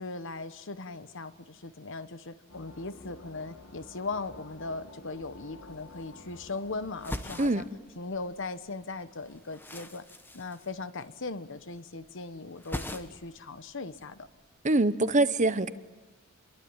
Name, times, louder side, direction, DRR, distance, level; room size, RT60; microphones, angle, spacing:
voice 1, 0.0-7.7 8.0-10.0 10.3-14.3, left 3 dB, 60° left, 12 dB, 1.2 m, -38 dB
sound 1, 2.5-7.7, left 2 dB, 90° left, 3.0 m, -51 dB
sound 2, 5.8-6.6 6.9-8.5 8.8-11.3 11.6-12.1 12.4-13.4 13.7-14.5, left 1 dB, 10° left, 1.3 m, -42 dB
voice 2, 14.6-15.7, right 2 dB, 35° right, 13 dB, 0.9 m, -24 dB
28.5 x 22.5 x 8.9 m, 1.2 s
head